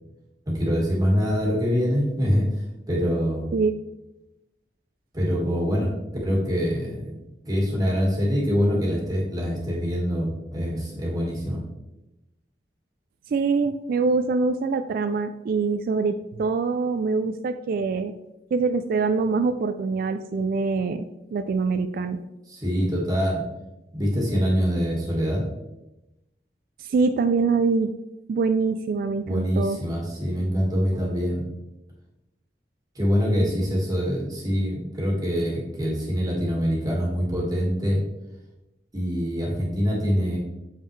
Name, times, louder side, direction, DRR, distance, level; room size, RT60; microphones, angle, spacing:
voice 1, 0.5-2.5 2.9-3.5 5.1-5.9 6.2-7.2 7.4-11.6 22.5-23.4 23.9-25.4 29.3-31.4 33.0-38.0 38.9-40.4, equal, 20° right, -3 dB, 1.7 m, -24 dB
voice 2, 13.3-18.1 18.5-22.2 26.8-27.9 28.3-29.8, right 4 dB, 55° right, 9 dB, 0.3 m, -24 dB
7.3 x 5.5 x 3.2 m, 0.95 s
head